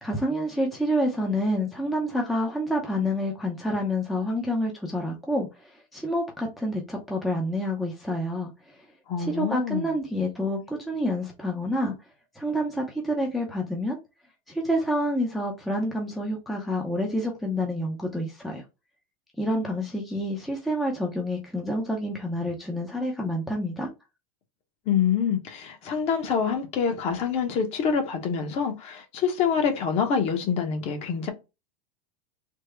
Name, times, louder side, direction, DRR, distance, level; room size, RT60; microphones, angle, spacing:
voice 1, 0.0-5.5 5.9-8.5 9.2-11.9 12.4-14.0 14.5-18.6 19.4-23.9, equal, ahead, 0.5 m, -28 dB
voice 2, 9.1-9.9 24.9-31.3, left 7 dB, 35° left, 0.8 m, -26 dB
3.5 x 2.0 x 3.2 m
supercardioid pair, 150°, 19 cm